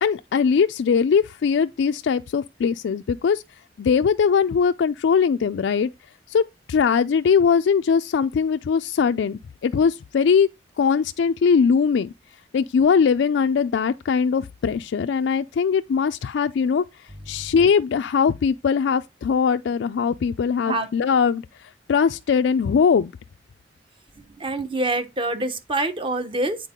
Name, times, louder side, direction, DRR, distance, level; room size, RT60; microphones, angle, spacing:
voice 1, 0.0-3.4 3.8-5.9 6.3-6.4 6.7-10.5 10.8-12.1 12.5-16.8 17.3-23.1, left 6 dB, 70° left, 0.3 m, -21 dB
voice 2, 24.4-26.6, right 2 dB, 30° right, 0.9 m, -25 dB
8.1 x 4.5 x 3.6 m
head